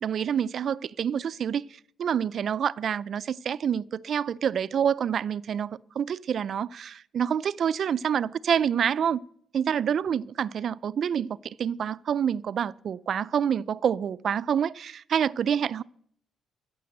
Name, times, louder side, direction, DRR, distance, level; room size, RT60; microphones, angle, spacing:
voice 1, 0.0-1.7 2.0-9.2 9.5-15.8, right 8 dB, 60° right, 0.4 m, -27 dB
14.5 x 6.8 x 7.8 m
cardioid pair, 90°, 0 cm